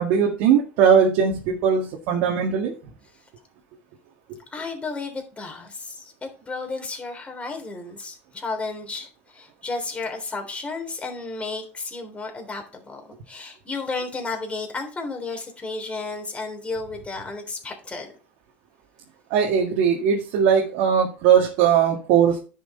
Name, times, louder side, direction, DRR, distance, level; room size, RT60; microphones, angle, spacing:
voice 1, 0.0-2.7 19.3-22.4, right 7 dB, 65° right, 1 dB, 2.0 m, -19 dB
voice 2, 4.5-6.1 6.4-13.0 13.3-18.1, left 3 dB, 20° left, 3 dB, 3.4 m, -33 dB
10.5 x 6.3 x 4.3 m, 0.37 s
hypercardioid pair, 90°, 6 cm